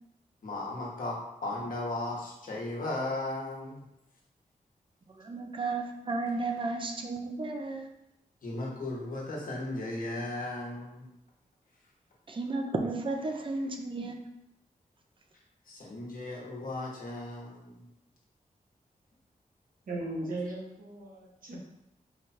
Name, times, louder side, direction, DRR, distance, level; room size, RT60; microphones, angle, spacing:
voice 1, 0.4-3.9 8.4-11.1 15.3-17.9, left 2 dB, 75° left, -3 dB, 1.1 m, -36 dB
voice 2, 5.1-7.9 12.3-14.2, right 3 dB, 35° right, 3 dB, 0.4 m, -33 dB
voice 3, 19.9-21.6, right 2 dB, 75° right, -3 dB, 1.1 m, -37 dB
4.7 x 2.3 x 4.2 m, 0.87 s
wide cardioid pair, 165°, 14 cm